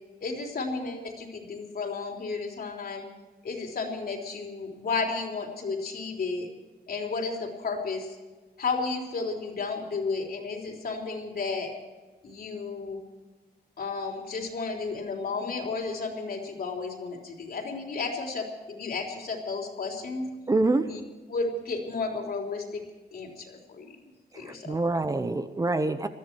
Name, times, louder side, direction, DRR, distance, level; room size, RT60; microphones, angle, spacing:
voice 1, 0.2-3.1 3.4-6.5 6.9-8.2 8.6-11.7 12.2-13.0 13.8-20.3 20.9-21.0 21.3-22.8 23.1-24.0 24.4-24.8, left 4 dB, 60° left, 1 dB, 3.6 m, -33 dB
voice 2, 20.5-20.8 24.4-26.1, right 2 dB, 20° right, 10 dB, 0.8 m, -26 dB
20.5 x 14.0 x 4.6 m, 1.3 s
wide cardioid pair, 170°, 17 cm